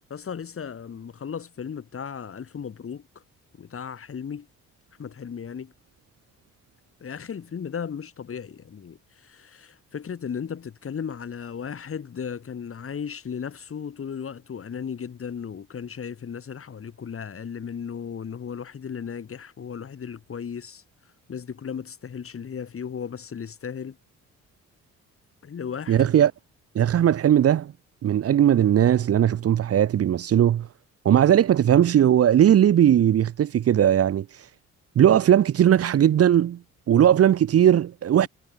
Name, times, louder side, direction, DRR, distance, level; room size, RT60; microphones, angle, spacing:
voice 1, 0.1-3.1 3.5-4.5 5.0-5.7 7.0-20.8 21.3-24.0 25.4-26.1, left 7 dB, 45° left, 5.5 m, -35 dB
voice 2, 25.9-26.3 26.7-27.7 28.0-30.7 31.0-34.3 35.0-36.6 36.9-38.3, right 10 dB, 50° right, 0.9 m, -18 dB
cardioid pair, 90°, 30 cm